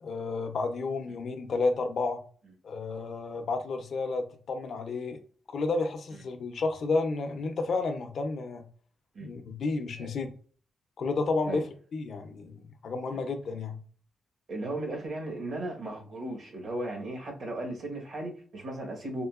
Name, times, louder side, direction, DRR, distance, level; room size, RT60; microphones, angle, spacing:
voice 1, 0.0-2.2 2.6-5.2 5.5-8.6 9.2-10.3 11.0-11.7 11.9-13.8, left 3 dB, 65° left, 5 dB, 0.5 m, -31 dB
voice 2, 14.5-19.3, right 1 dB, 65° right, 1 dB, 1.2 m, -36 dB
3.7 x 2.5 x 2.4 m, 0.43 s
cardioid pair, 95°, 0 cm